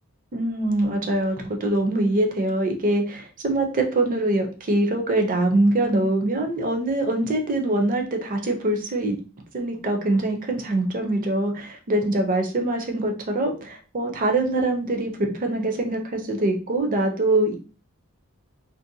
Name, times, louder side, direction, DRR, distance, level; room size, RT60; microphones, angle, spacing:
voice 1, 0.3-9.2 9.5-17.5, right 2 dB, 35° right, 3 dB, 0.5 m, -23 dB
2.5 x 2.1 x 2.6 m, 0.35 s
head